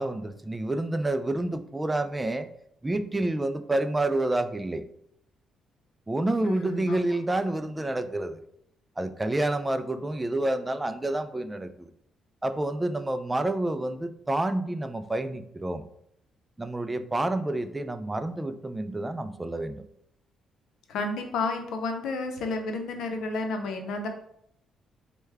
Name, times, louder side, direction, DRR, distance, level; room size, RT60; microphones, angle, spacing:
voice 1, 0.0-2.5 2.8-4.8 6.1-8.4 9.0-11.9 12.4-15.8 16.6-19.8, right 2 dB, 15° right, 10 dB, 0.3 m, -28 dB
voice 2, 6.4-7.0 20.9-24.1, left 3 dB, 80° left, 5 dB, 0.6 m, -31 dB
4.5 x 2.2 x 3.3 m, 0.73 s
cardioid pair, 90°, 0 cm